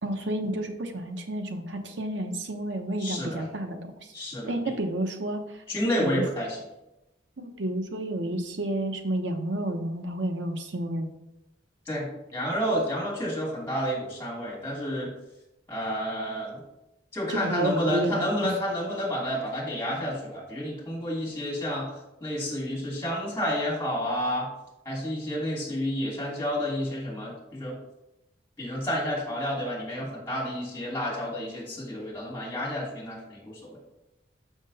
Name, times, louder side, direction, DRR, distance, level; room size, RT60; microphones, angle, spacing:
voice 1, 0.0-4.1 4.5-5.6 6.0-6.2 7.4-11.1 17.3-18.5, right 1 dB, 85° right, 5 dB, 1.0 m, -30 dB
voice 2, 3.0-3.4 4.1-4.7 5.7-6.6 11.9-15.1 15.7-16.6 17.1-21.9 22.2-24.5 24.8-27.8 28.6-33.8, equal, 15° left, -5 dB, 2.9 m, -30 dB
6.5 x 6.1 x 4.1 m, 0.93 s
head